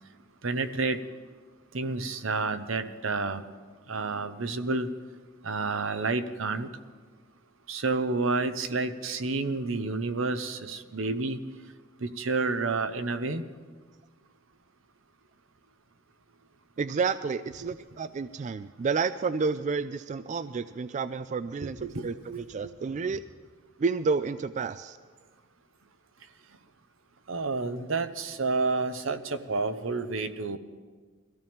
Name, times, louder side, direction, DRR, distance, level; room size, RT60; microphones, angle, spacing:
voice 1, 0.4-1.0 1.7-3.4 3.9-4.9 5.4-6.7 7.7-11.4 12.0-13.4 17.6-17.7 21.6-22.4 27.3-30.6, right 3 dB, 75° right, 10 dB, 0.9 m, -30 dB
voice 2, 16.8-23.2 23.8-25.0, right 5 dB, 40° right, 13 dB, 0.3 m, -30 dB
22.0 x 14.5 x 3.6 m, 1.5 s
head